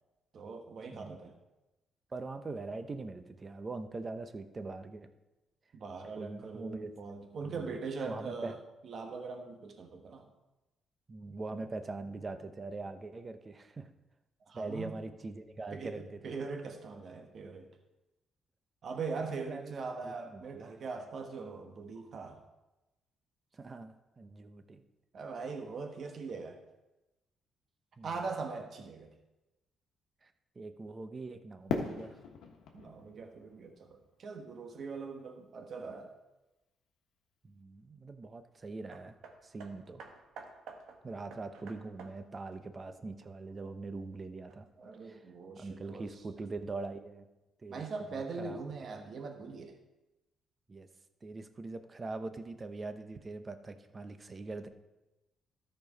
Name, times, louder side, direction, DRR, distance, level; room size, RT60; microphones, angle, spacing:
voice 1, 0.3-1.4 5.7-10.3 14.5-14.9 15.7-17.7 18.8-22.4 25.1-26.6 28.0-29.1 32.7-36.1 44.8-46.1 47.7-49.8, right 4 dB, 55° right, 4 dB, 1.2 m, -41 dB
voice 2, 2.1-5.1 6.2-6.9 7.4-7.7 8.0-8.6 11.1-13.9 14.5-16.5 19.3-19.7 20.0-20.4 21.4-21.6 23.5-24.8 28.0-28.2 30.2-30.3 30.6-32.2 37.4-39.1 39.4-40.0 41.0-44.7 45.0-45.3 45.6-47.3 47.6-47.8 48.1-48.6 49.0-49.1 50.7-50.9 51.2-54.7, right 3 dB, 30° right, 9 dB, 0.8 m, -42 dB
Fireworks, 31.7-34.7, left 5 dB, 85° left, 1.3 m, -39 dB
Hammer, 38.9-43.6 44.5-44.6, right 4 dB, 85° right, 1.2 m, -52 dB
13.5 x 4.6 x 5.3 m, 1.0 s
cardioid pair, 90°, 0 cm